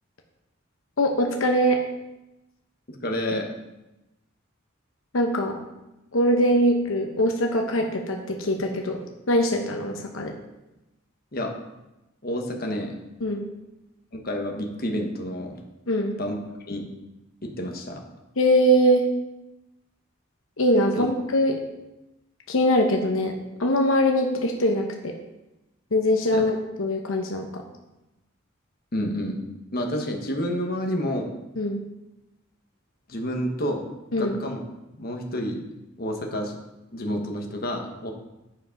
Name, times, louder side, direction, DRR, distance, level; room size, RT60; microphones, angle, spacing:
voice 1, 1.0-1.8 5.1-5.6 6.1-10.3 13.2-13.5 15.9-16.2 18.4-19.0 20.6-21.6 22.5-23.3 23.6-25.1 25.9-27.6 31.6-31.8 34.1-34.4, equal, 80° left, 3 dB, 0.9 m, -22 dB
voice 2, 3.0-3.5 11.3-11.5 12.2-12.9 14.1-15.5 16.2-16.4 16.7-16.8 17.4-18.0 21.0-21.1 26.3-26.4 28.9-29.4 29.7-31.3 33.1-33.8 34.2-34.7 35.0-35.6 36.0-36.6 36.9-38.1, equal, 45° left, 2 dB, 1.1 m, -29 dB
9.1 x 5.1 x 5.1 m, 0.97 s
head